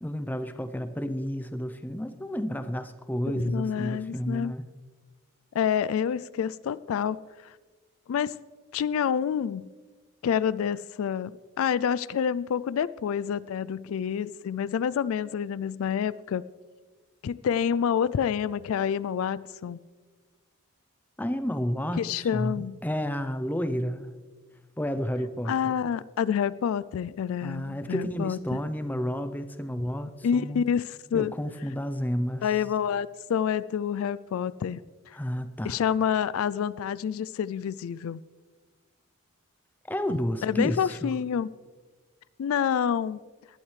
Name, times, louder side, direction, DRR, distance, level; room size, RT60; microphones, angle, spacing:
voice 1, 0.0-4.7 21.2-24.1 24.8-25.8 27.4-30.6 31.1-32.5 35.1-35.8 39.9-41.1, equal, 10° left, 10 dB, 0.6 m, -31 dB
voice 2, 3.5-4.5 5.5-7.2 7.4-7.5 8.1-8.3 8.7-9.7 10.2-16.4 17.2-19.8 22.0-22.8 25.5-28.4 30.2-31.3 32.4-34.8 35.6-38.2 40.4-41.5 42.4-43.2, left 8 dB, 75° left, 18 dB, 0.3 m, -28 dB
19.5 x 12.0 x 3.3 m, 1.4 s
head